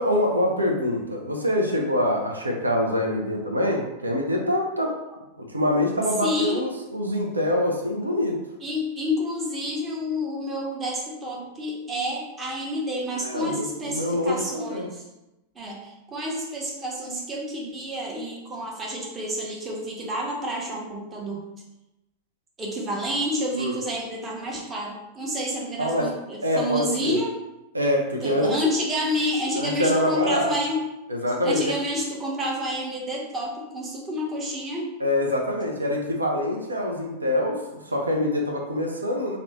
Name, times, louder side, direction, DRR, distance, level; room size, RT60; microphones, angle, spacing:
voice 1, 0.0-5.0 5.4-8.4 13.2-14.9 23.6-23.8 25.8-26.1 26.4-27.2 27.7-28.5 29.6-30.5 31.1-31.6 35.0-39.4, left 1 dB, 80° right, 1 dB, 0.4 m, -25 dB
voice 2, 6.2-6.6 8.6-15.0 15.5-21.4 22.6-27.3 28.2-30.8 31.4-34.9, equal, 20° right, -3 dB, 0.7 m, -29 dB
2.5 x 2.0 x 2.9 m, 0.96 s
figure-of-eight pair, 90°, 0 cm